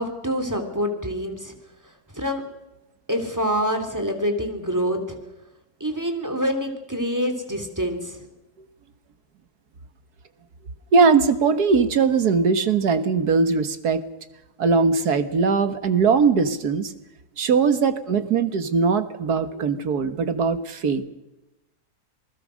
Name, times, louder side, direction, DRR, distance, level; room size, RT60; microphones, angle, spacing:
voice 1, 0.0-1.5 2.1-2.4 3.1-5.2 5.8-8.2, equal, 10° right, 4 dB, 3.0 m, -26 dB
voice 2, 10.9-14.0 14.6-16.9 17.4-21.0, right 5 dB, 70° right, 10 dB, 1.9 m, -20 dB
27.0 x 20.0 x 6.4 m, 0.98 s
omnidirectional pair, 1.8 m